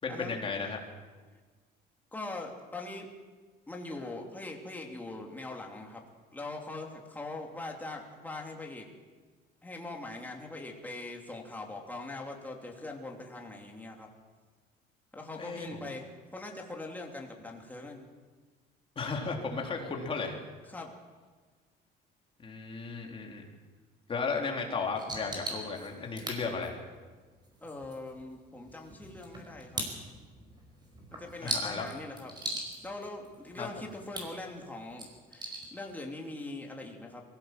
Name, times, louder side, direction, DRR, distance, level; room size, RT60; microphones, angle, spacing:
voice 1, 0.0-0.8 15.4-15.7 18.9-20.4 22.4-23.4 24.1-26.8 31.4-31.9 33.6-33.7, left 4 dB, 25° left, 1 dB, 3.5 m, -34 dB
voice 2, 2.1-3.1 3.7-6.0 6.3-8.9 9.6-14.1 15.1-18.1 20.7-20.9 27.6-29.8 31.1-32.3 32.8-37.2, left 2 dB, 10° left, 0 dB, 2.9 m, -42 dB
sound 1, 24.9-36.1, right 2 dB, 20° right, 5.2 m, -42 dB
23.0 x 16.0 x 7.7 m, 1.4 s
cardioid pair, 140°, 19 cm